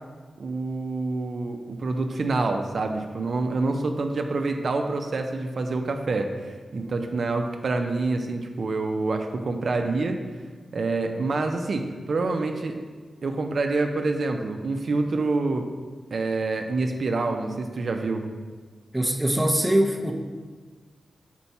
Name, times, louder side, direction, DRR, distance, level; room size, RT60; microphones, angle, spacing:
voice 1, 0.4-10.2 10.7-12.8 13.2-15.6 16.1-18.2, right 3 dB, 60° right, 4 dB, 0.5 m, -27 dB
voice 2, 18.9-20.1, right 1 dB, 10° right, 2 dB, 0.5 m, -22 dB
5.7 x 4.5 x 4.1 m, 1.5 s
wide cardioid pair, 100°, 0 cm